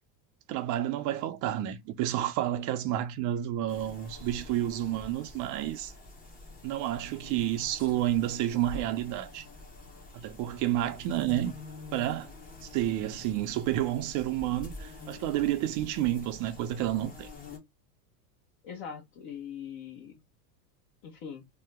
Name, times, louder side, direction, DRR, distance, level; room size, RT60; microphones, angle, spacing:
voice 1, 0.5-5.9 6.6-9.5 10.1-11.5 11.9-12.3 12.7-17.3, right 13 dB, 40° right, 0.5 m, -30 dB
sound 1, 3.7-17.6, left 3 dB, 20° left, 0.7 m, -47 dB
voice 2, 18.6-20.2 21.0-21.5, left 7 dB, 50° left, 1.1 m, -42 dB
2.9 x 2.1 x 3.4 m
supercardioid pair, 130°, 48 cm